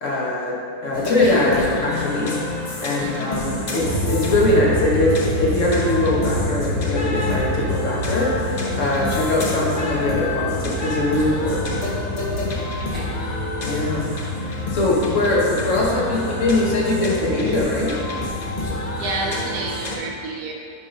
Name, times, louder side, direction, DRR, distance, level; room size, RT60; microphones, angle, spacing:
voice 1, 0.0-2.4 2.8-11.6 13.6-14.1 14.5-17.9, left 2 dB, 50° left, -4 dB, 1.2 m, -22 dB
sound 1, 0.9-20.0, left 2 dB, 75° left, 0.4 m, -29 dB
sound 2, 3.8-19.7, left 1 dB, 35° right, 1.5 m, -28 dB
voice 2, 19.0-20.5, right 3 dB, 65° right, -1 dB, 1.0 m, -29 dB
7.1 x 4.0 x 5.2 m, 2.5 s
omnidirectional pair, 1.9 m